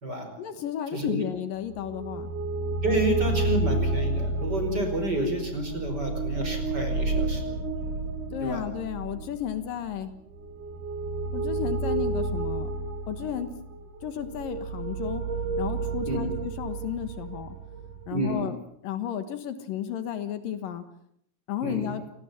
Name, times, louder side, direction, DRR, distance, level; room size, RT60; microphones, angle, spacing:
voice 1, 0.4-2.3 8.3-10.1 11.3-12.7 13.1-13.5 14.0-15.3 15.6-17.6 18.1-18.6 18.8-20.8 21.5-22.0, left 9 dB, 75° left, 10 dB, 3.1 m, -33 dB
voice 2, 0.9-1.3 2.8-7.5 8.4-8.6 16.1-16.3 18.1-18.5 21.6-21.9, right 1 dB, 25° right, 5 dB, 5.4 m, -29 dB
sound 1, 1.7-18.4, right 3 dB, 65° right, 4.1 m, -31 dB
28.5 x 18.5 x 7.1 m, 0.71 s
omnidirectional pair, 4.1 m